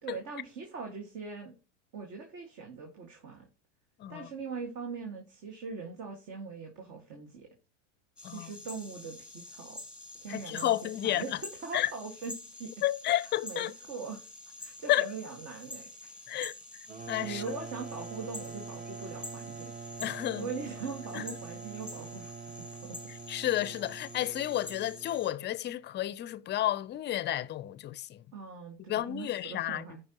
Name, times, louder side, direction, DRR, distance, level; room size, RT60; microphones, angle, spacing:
voice 1, 0.0-1.6 1.9-3.5 4.1-7.5 8.2-9.8 10.1-11.3 11.6-12.7 13.4-14.3 14.6-16.2 17.2-19.7 20.4-22.5 22.8-23.0 28.3-30.0, right 5 dB, 50° right, 1.9 m, -41 dB
sound 1, 8.2-25.3, left 2 dB, ahead, 1.7 m, -47 dB
voice 2, 10.3-11.2 11.7-11.9 12.8-13.7 14.9-15.1 16.3-16.5 17.1-17.4 20.0-20.5 21.1-21.2 23.3-28.3 28.9-29.8, left 13 dB, 30° left, 0.5 m, -31 dB
sound 2, 16.9-25.4, right 5 dB, 20° right, 0.5 m, -44 dB
14.0 x 5.4 x 2.9 m
hypercardioid pair, 100°, 36 cm